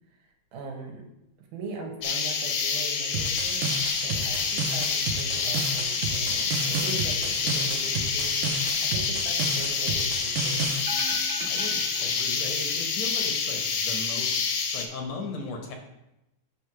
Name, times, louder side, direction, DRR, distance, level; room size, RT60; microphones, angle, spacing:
voice 1, 0.2-1.1 1.4-8.4 8.8-10.7, right 4 dB, 70° right, 2 dB, 2.6 m, -40 dB
sound 1, 2.0-14.8, left 5 dB, 85° left, 2.7 m, -27 dB
sound 2, 3.1-10.8, right 5 dB, 90° right, 2.4 m, -32 dB
sound 3, 10.8-12.7 13.0-13.1, right 3 dB, 55° right, 2.2 m, -38 dB
voice 2, 11.5-15.7, left 3 dB, 70° left, 3 dB, 1.7 m, -37 dB
9.0 x 3.3 x 5.9 m, 0.89 s
omnidirectional pair, 3.9 m